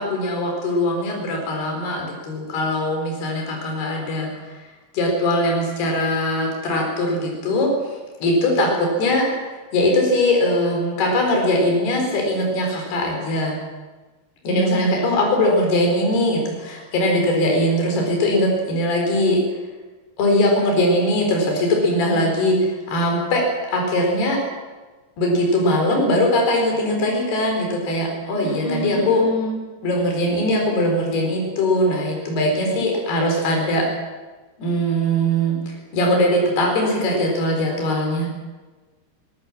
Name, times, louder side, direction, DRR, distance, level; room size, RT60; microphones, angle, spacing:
voice 1, 0.0-4.5 4.9-7.9 8.2-13.6 14.4-19.4 20.2-24.4 25.2-29.2 29.8-33.8 34.6-38.3, left 1 dB, 70° left, 1 dB, 6.3 m, -21 dB
voice 2, 14.4-15.0 28.4-29.6, right 1 dB, 45° left, 2 dB, 6.1 m, -27 dB
24.0 x 18.5 x 7.4 m, 1.3 s
omnidirectional pair, 4.8 m